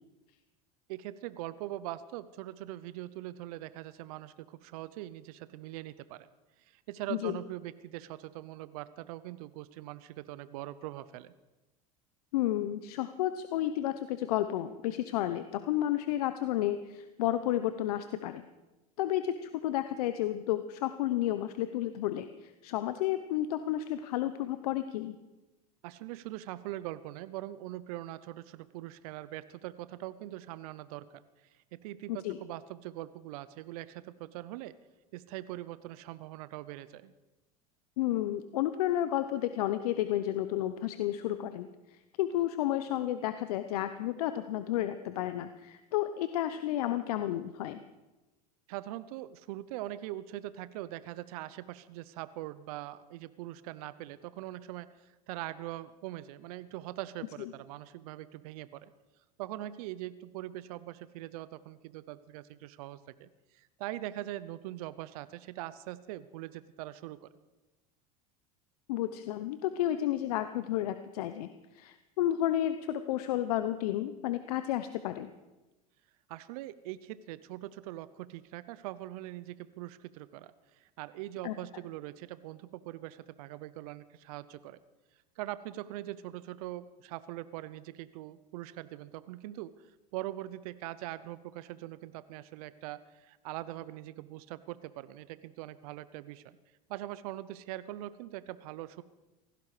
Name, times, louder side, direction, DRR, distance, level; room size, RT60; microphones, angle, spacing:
voice 1, 0.9-6.3 6.6-11.3 25.8-34.7 35.1-37.1 48.7-58.9 59.4-67.3 76.3-84.8 85.4-96.6 96.9-99.0, right 15 dB, 70° right, 16 dB, 0.7 m, -42 dB
voice 2, 12.3-18.4 19.0-25.2 32.1-32.4 38.0-47.8 57.4-57.5 68.9-75.3 81.4-81.6, left 13 dB, 75° left, 11 dB, 0.9 m, -32 dB
17.5 x 15.5 x 5.0 m, 1.1 s
hypercardioid pair, 90°, 20 cm